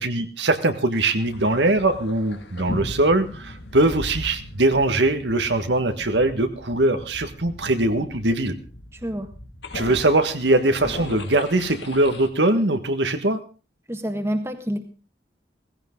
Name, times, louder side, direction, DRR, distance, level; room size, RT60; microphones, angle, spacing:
voice 1, 0.0-8.6 9.7-13.4, right 2 dB, 85° right, 7 dB, 1.6 m, -21 dB
sound 1, 1.2-12.3, left 1 dB, 85° left, 2.1 m, -38 dB
voice 2, 13.9-14.8, equal, 15° right, 6 dB, 1.6 m, -27 dB
17.0 x 15.5 x 3.8 m, 0.35 s
head